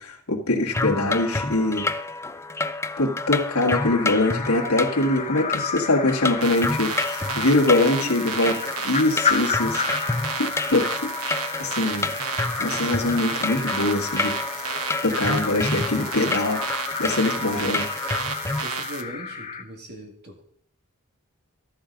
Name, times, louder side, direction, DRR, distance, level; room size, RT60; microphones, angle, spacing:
voice 1, 0.0-1.9 3.0-8.5 8.8-9.8 10.7-11.1 11.6-12.1 12.6-14.3 15.0-16.6 17.0-17.8, left 2 dB, 80° left, -2 dB, 1.8 m, -23 dB
sound 1, 0.7-18.6, left 2 dB, 10° left, 0.4 m, -29 dB
sound 2, 3.7-19.6, left 6 dB, 30° left, 0.8 m, -33 dB
sound 3, 6.4-19.0, right 6 dB, 80° right, 1.1 m, -33 dB
voice 2, 7.7-8.3 17.4-17.8 18.6-20.4, right 1 dB, 50° right, 2 dB, 2.1 m, -40 dB
13.5 x 7.3 x 5.2 m, 0.65 s
head